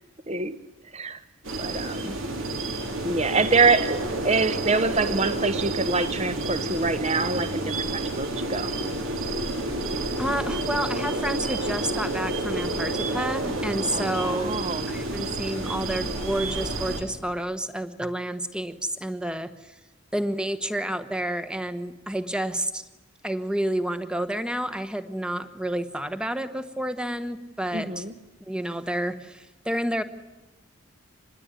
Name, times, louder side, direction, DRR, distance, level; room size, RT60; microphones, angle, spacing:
sound 1, 1.4-17.0, right 2 dB, 70° right, 3.6 m, -29 dB
voice 1, 1.6-2.2 3.0-7.6 7.9-8.7 13.9-14.9 27.7-28.1, right 4 dB, 30° right, 13 dB, 1.2 m, -25 dB
voice 2, 10.2-14.5 14.9-19.7 20.1-22.8 23.2-28.0 28.5-30.0, right 1 dB, 5° right, 10 dB, 1.2 m, -30 dB
26.0 x 20.5 x 9.9 m, 1.0 s
head